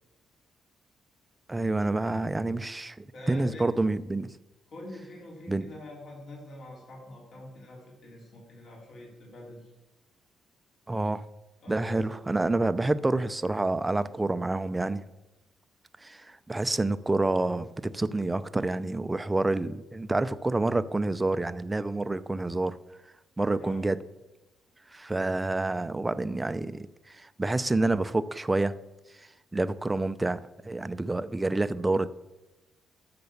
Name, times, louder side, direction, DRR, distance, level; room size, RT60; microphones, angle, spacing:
voice 1, 1.5-4.3 5.5-5.7 10.9-11.2 11.7-15.0 16.0-22.8 23.4-24.0 24.9-26.9 27.2-28.8 29.5-32.1, right 2 dB, 15° right, 14 dB, 0.5 m, -28 dB
voice 2, 3.1-3.7 4.7-9.7 11.6-12.0 23.5-23.9, left 1 dB, 60° left, -2 dB, 3.6 m, -45 dB
10.5 x 6.9 x 7.0 m, 1.0 s
cardioid pair, 130°, 0 cm